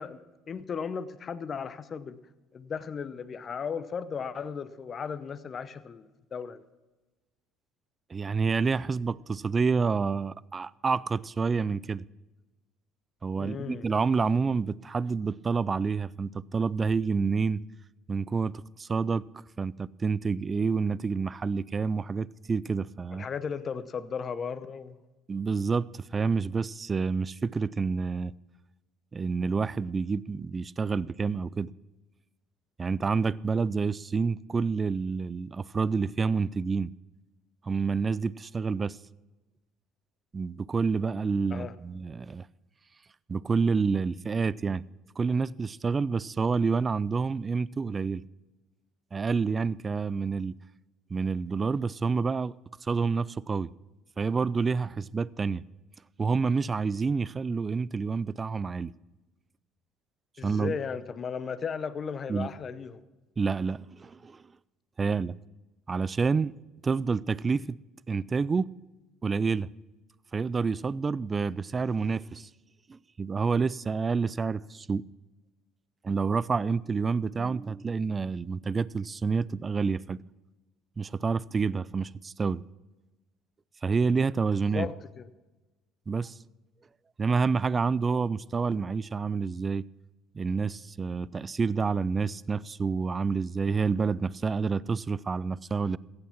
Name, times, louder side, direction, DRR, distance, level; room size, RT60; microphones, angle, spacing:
voice 1, 0.0-2.2 2.5-6.6 13.4-13.9 23.1-25.0 41.5-41.7 60.4-63.0 84.7-85.3, left 6 dB, 40° left, 0.8 m, -36 dB
voice 2, 8.1-12.0 13.2-17.6 18.1-19.2 19.6-23.3 25.3-28.3 29.1-31.7 32.8-36.9 37.6-39.0 40.3-42.5 43.3-44.8 45.2-48.2 49.1-50.6 51.1-52.5 52.8-53.7 54.2-55.6 56.2-58.9 60.4-60.8 62.3-62.5 63.4-64.4 65.0-65.3 65.9-66.5 66.8-67.8 68.1-68.7 69.2-69.7 70.3-72.5 72.9-75.0 76.0-80.2 81.0-82.6 83.8-84.9 86.1-86.3 87.2-89.8 90.3-96.0, right 5 dB, 30° right, 0.3 m, -28 dB
15.0 x 8.7 x 5.9 m
supercardioid pair, 75°, 0 cm